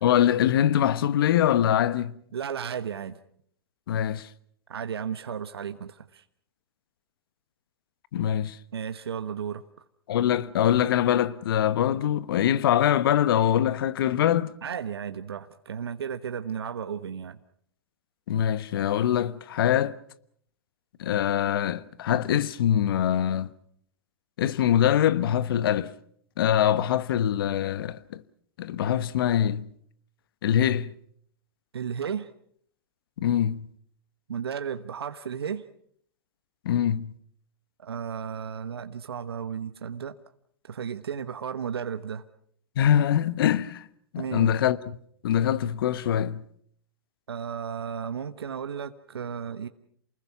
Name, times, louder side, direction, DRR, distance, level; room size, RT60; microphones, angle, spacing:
voice 1, 0.0-2.2 3.9-4.3 8.1-8.6 10.1-14.5 18.3-20.0 21.0-23.5 24.4-25.9 26.4-28.2 28.6-29.7 30.4-30.9 33.2-33.7 36.6-37.1 42.8-43.9 44.1-45.0 45.2-46.4, left 10 dB, 65° left, 1.2 m, -23 dB
voice 2, 2.3-3.2 4.7-6.2 8.7-9.6 14.6-17.4 31.7-32.3 34.3-35.6 37.8-40.1 40.7-42.2 44.2-44.5 47.3-49.7, right 7 dB, 80° right, 1.2 m, -34 dB
29.0 x 20.5 x 6.0 m
hypercardioid pair, 115°, 13 cm